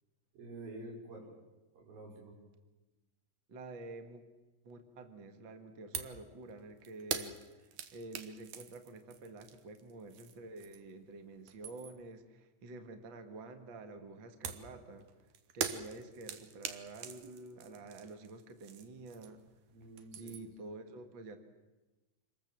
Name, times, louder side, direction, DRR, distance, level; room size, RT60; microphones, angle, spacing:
voice 1, 0.3-1.3 1.7-2.3 19.7-20.4, right 2 dB, 85° right, -1 dB, 7.1 m, -48 dB
voice 2, 3.5-4.2 4.6-15.1 15.5-19.4 20.2-21.4, right 2 dB, 40° right, 7 dB, 2.0 m, -49 dB
sound 1, 5.9-6.2 6.5-11.0 11.3-12.1 14.4-19.5 19.8-20.6, right 8 dB, 65° right, 2.7 m, -43 dB
27.0 x 21.0 x 7.7 m, 1.1 s
omnidirectional pair, 4.0 m